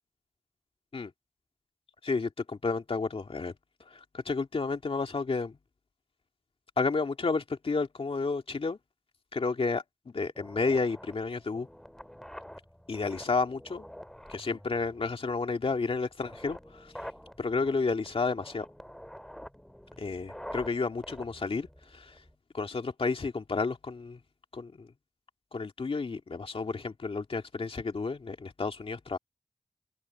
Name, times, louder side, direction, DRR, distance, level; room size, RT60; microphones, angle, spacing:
voice 1, 2.0-3.5 3.9-5.6 6.8-8.8 9.3-11.7 12.9-13.9 14.3-16.9 17.4-18.7 20.0-21.7 21.9-22.1 22.5-24.2 24.5-24.9 25.5-29.2, left 4 dB, 65° left, 2.2 m, -31 dB
sound 1, 10.3-22.3, equal, 5° left, 2.0 m, -47 dB
open air
cardioid pair, 40°, 10 cm